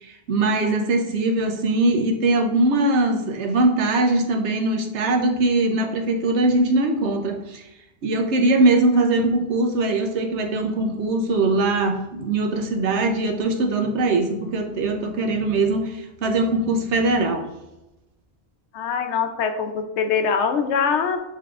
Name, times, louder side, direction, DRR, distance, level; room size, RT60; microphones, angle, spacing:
voice 1, 0.0-7.6 8.0-17.4, right 2 dB, 75° right, 3 dB, 1.0 m, -21 dB
voice 2, 18.7-21.2, left 6 dB, 80° left, 7 dB, 0.9 m, -23 dB
6.7 x 3.3 x 2.4 m, 0.94 s
omnidirectional pair, 1.2 m